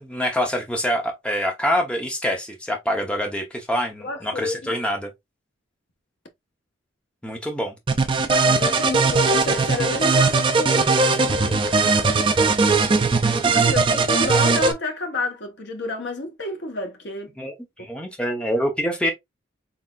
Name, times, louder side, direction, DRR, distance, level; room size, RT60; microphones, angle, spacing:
voice 1, 0.0-5.1 7.2-7.8 13.2-13.5 17.4-19.1, equal, 5° left, 0.8 m, -26 dB
voice 2, 4.0-4.7 8.3-13.0 13.4-17.3, left 2 dB, 55° left, 1.1 m, -31 dB
sound 1, 7.9-14.7, right 4 dB, 25° right, 0.4 m, -19 dB
4.0 x 3.4 x 2.4 m
head